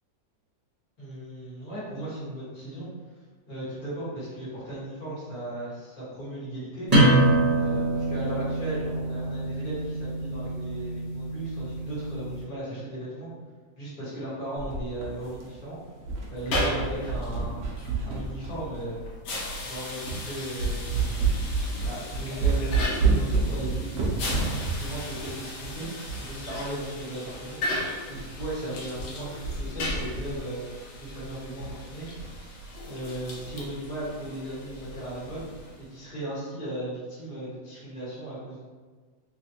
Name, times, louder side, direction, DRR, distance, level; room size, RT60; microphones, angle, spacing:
voice 1, 1.0-2.9 3.5-6.9 7.5-13.3 13.8-15.8 16.3-19.0 19.6-21.1 21.8-27.6 28.1-30.7 31.0-32.1 32.8-35.5 35.9-38.6, right 1 dB, 25° left, -10 dB, 1.5 m, -36 dB
sound 1, 6.9-12.3, right 1 dB, 25° right, 1.1 m, -25 dB
sound 2, 14.6-15.7 16.0-19.0 19.6-19.7 20.1-20.3 20.6-26.6 26.9-27.0 27.3-27.4 27.8-28.0 28.4-28.5 28.8-29.1 29.4-30.4, right 4 dB, 65° right, 0.8 m, -29 dB
sound 3, 16.3-35.9, left 1 dB, 85° left, 1.5 m, -37 dB
3.3 x 3.2 x 2.9 m, 1.4 s
omnidirectional pair, 2.1 m